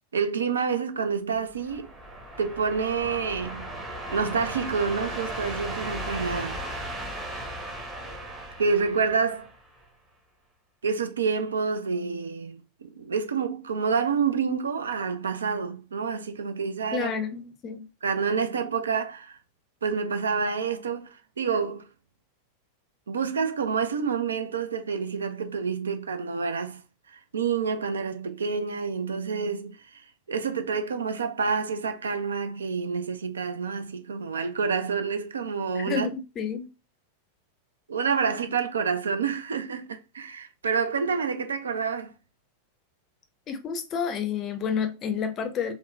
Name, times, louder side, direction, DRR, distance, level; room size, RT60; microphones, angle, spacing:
voice 1, 0.1-1.9 2.4-3.7 4.1-6.6 8.6-9.5 10.8-17.1 18.0-19.4 19.8-21.9 23.1-26.8 27.1-36.1 37.9-42.1, right 5 dB, 70° right, 0.4 m, -28 dB
sound 1, 1.4-9.8, right 1 dB, 10° right, 0.8 m, -36 dB
voice 2, 16.9-17.9 35.8-36.7 43.5-45.7, left 6 dB, 30° left, 0.5 m, -30 dB
3.5 x 2.1 x 2.6 m
figure-of-eight pair, 90°, 0 cm